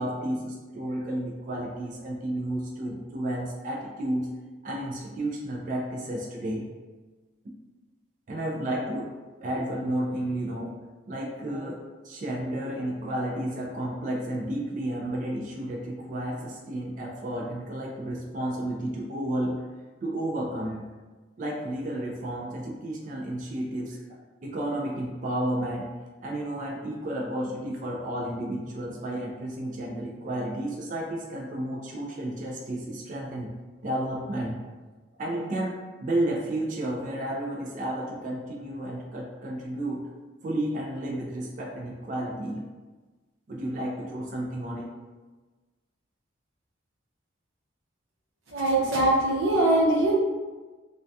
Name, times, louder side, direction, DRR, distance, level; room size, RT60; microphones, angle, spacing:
voice 1, 0.0-4.3 4.6-6.6 8.3-9.1 9.4-10.7 11.1-11.8 12.0-19.6 20.0-20.8 21.4-24.0 24.4-25.9 26.2-33.5 33.8-34.6 35.2-40.1 40.4-42.6 43.5-44.9, right 1 dB, 40° right, -2 dB, 0.3 m, -32 dB
voice 2, 48.5-50.2, right 1 dB, 85° right, -5 dB, 0.8 m, -22 dB
2.2 x 2.2 x 2.6 m, 1.3 s
head